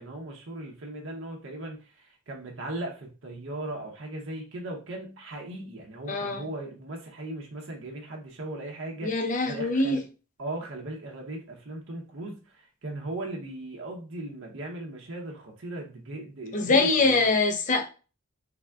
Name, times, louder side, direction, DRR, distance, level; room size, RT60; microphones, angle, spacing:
voice 1, 0.0-10.0 10.4-17.3, right 1 dB, 65° right, 0.7 m, -38 dB
voice 2, 6.1-6.4 9.0-10.0 16.5-17.9, left 3 dB, 35° left, 0.5 m, -23 dB
3.4 x 2.3 x 3.4 m
head